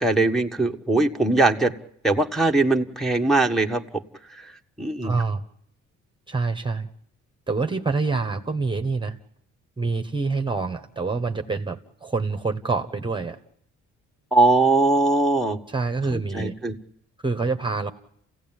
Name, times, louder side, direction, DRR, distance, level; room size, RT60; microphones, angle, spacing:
voice 1, 0.0-1.7 2.0-3.8 4.8-5.1 14.3-15.6 16.1-16.7, right 2 dB, ahead, 1 dB, 1.4 m, -20 dB
voice 2, 5.0-5.4 6.3-6.9 7.5-9.2 9.8-13.4 15.7-16.5 17.2-17.9, right 4 dB, 15° right, 8 dB, 1.3 m, -26 dB
28.5 x 16.5 x 9.0 m, 0.73 s
cardioid pair, 90°, 30 cm